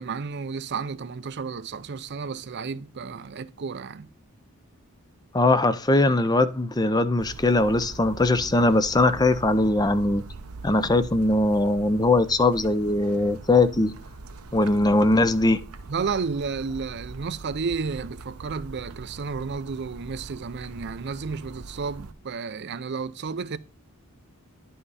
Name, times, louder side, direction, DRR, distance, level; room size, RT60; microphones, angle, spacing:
voice 1, 0.0-4.1 15.9-23.6, right 5 dB, 50° right, 0.5 m, -32 dB
voice 2, 5.3-10.2 10.6-13.9 14.5-15.6, left 2 dB, 20° left, 0.5 m, -21 dB
sound 1, 7.2-22.1, right 3 dB, 85° right, 0.9 m, -42 dB
11.0 x 5.6 x 4.0 m
head